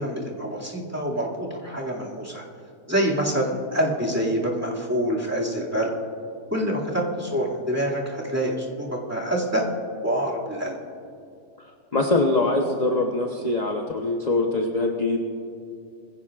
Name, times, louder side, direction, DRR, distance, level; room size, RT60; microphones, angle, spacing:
voice 1, 0.0-2.4 2.9-5.9 6.5-9.6 10.0-10.8, right 1 dB, 10° right, -5 dB, 2.2 m, -26 dB
voice 2, 11.9-15.2, left 2 dB, 30° left, 2 dB, 0.9 m, -23 dB
22.5 x 16.0 x 2.5 m, 2.5 s
omnidirectional pair, 1.6 m